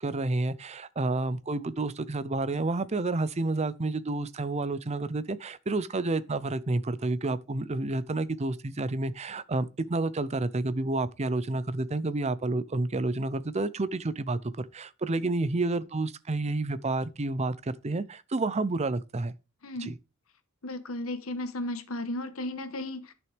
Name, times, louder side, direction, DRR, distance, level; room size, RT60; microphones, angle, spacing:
voice 1, 0.0-19.3 19.8-19.9, right 2 dB, 30° right, 0.6 m, -30 dB
voice 2, 20.6-23.1, left 1 dB, 80° left, 1.3 m, -34 dB
11.0 x 6.2 x 3.4 m
head